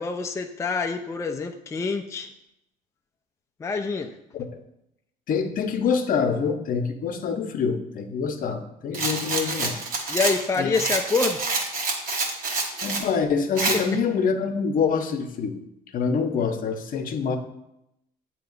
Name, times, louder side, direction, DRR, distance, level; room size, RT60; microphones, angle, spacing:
voice 1, 0.0-2.3 3.6-4.1 10.1-11.4, left 4 dB, 20° left, 5 dB, 0.4 m, -26 dB
voice 2, 5.3-9.8 10.6-10.7 12.8-15.6 15.9-17.4, left 5 dB, 55° left, 7 dB, 0.7 m, -25 dB
Rattle, 8.9-13.1 13.6-13.8, right 3 dB, 55° right, 1.2 m, -27 dB
7.7 x 2.9 x 5.3 m, 0.82 s
cardioid pair, 110°, 17 cm